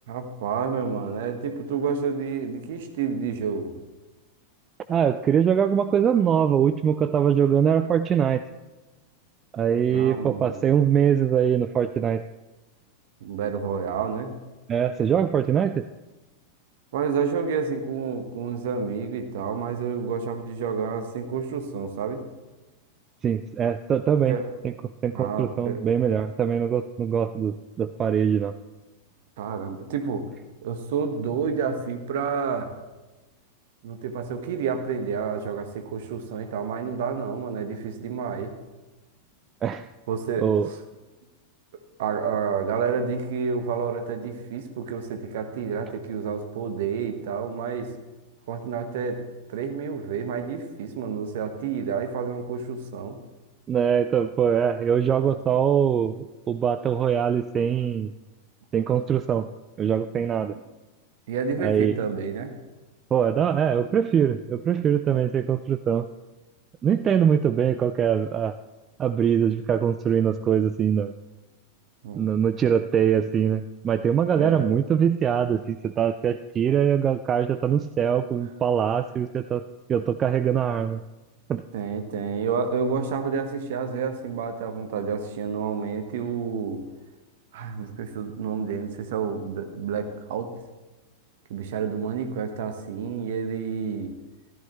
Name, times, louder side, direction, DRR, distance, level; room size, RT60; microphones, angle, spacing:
voice 1, 0.1-3.7 9.9-10.5 13.2-14.3 16.9-22.2 24.3-24.5 25.1-25.8 29.4-30.2 30.6-32.7 33.8-38.5 40.1-40.8 42.0-47.9 48.5-53.2 61.3-62.5 72.0-72.3 74.3-74.7 81.7-86.8 87.5-90.5 91.5-94.1, right 6 dB, 55° right, 7 dB, 1.2 m, -29 dB
voice 2, 4.9-8.4 9.5-12.2 14.7-15.8 23.2-24.4 24.8-28.6 39.6-39.9 40.4-40.7 53.7-58.1 58.7-59.5 59.8-60.6 61.6-61.9 63.1-66.1 66.8-68.6 69.0-71.1 72.1-79.6 79.9-81.0 81.5-81.6, right 8 dB, 25° right, 12 dB, 0.3 m, -23 dB
14.0 x 12.5 x 3.1 m, 1.1 s
figure-of-eight pair, 90°, 0 cm